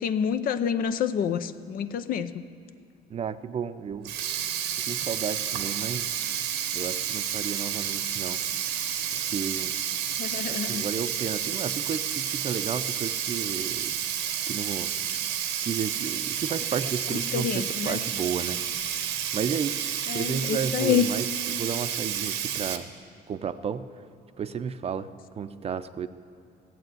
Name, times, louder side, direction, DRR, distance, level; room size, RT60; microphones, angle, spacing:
voice 1, 0.0-2.4 10.2-10.8 17.1-18.0 20.1-21.1, left 8 dB, 60° left, 12 dB, 0.6 m, -28 dB
voice 2, 3.1-4.1 4.8-6.2 6.7-8.4 9.1-9.7 10.5-14.0 14.5-14.9 15.6-18.6 18.9-22.9 23.3-23.9 24.4-25.1 25.4-26.1, right 7 dB, 35° right, 12 dB, 0.6 m, -33 dB
Sink (filling or washing), 3.9-22.8, right 9 dB, 90° right, 1.0 m, -30 dB
15.5 x 7.7 x 9.3 m, 2.4 s
cardioid pair, 110°, 17 cm